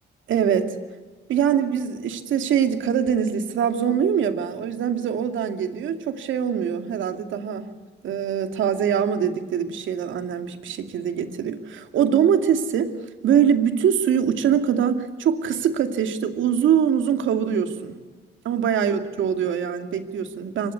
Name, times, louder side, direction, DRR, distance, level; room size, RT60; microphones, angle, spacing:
voice 1, 0.3-0.7 1.3-7.7 8.0-12.9 13.2-18.0 18.5-20.7, right 8 dB, 75° right, 7 dB, 2.5 m, -23 dB
25.0 x 19.5 x 8.3 m, 1.4 s
cardioid pair, 90°, 20 cm